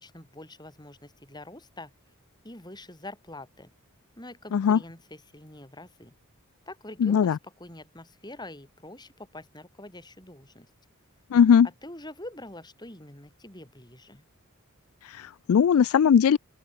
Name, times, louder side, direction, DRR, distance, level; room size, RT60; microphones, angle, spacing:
voice 1, 0.0-1.9 2.4-3.7 4.2-6.1 6.7-10.7 11.8-14.2, left 1 dB, 20° left, 7.9 m, -45 dB
voice 2, 7.0-7.4 11.3-11.7 15.1-16.4, left 7 dB, 70° left, 0.3 m, -19 dB
open air
head